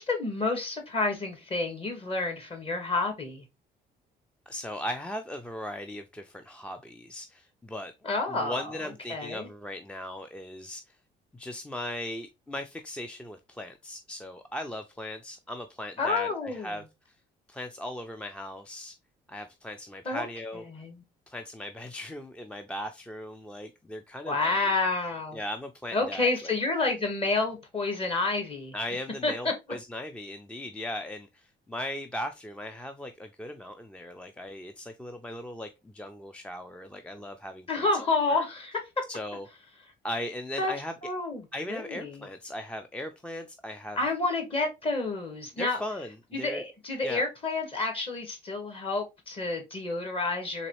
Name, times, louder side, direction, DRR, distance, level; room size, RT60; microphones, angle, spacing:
voice 1, 0.0-3.5 8.0-8.6 9.1-9.5 16.0-16.8 20.0-20.3 20.7-21.0 24.3-25.4 25.9-28.7 29.2-29.3 37.7-38.8 40.6-40.7 41.0-42.3 44.0-45.8 46.3-50.7, left 3 dB, 35° left, 1.5 m, -29 dB
voice 2, 4.5-7.9 8.3-10.8 11.3-16.8 17.5-18.9 19.3-20.6 21.3-24.5 25.3-26.5 28.7-37.9 38.3-38.4 39.1-39.5 40.0-41.0 41.5-44.0 45.6-46.6 47.0-47.3, left 1 dB, 5° left, 0.4 m, -38 dB
4.0 x 3.0 x 3.0 m
cardioid pair, 110°, 17 cm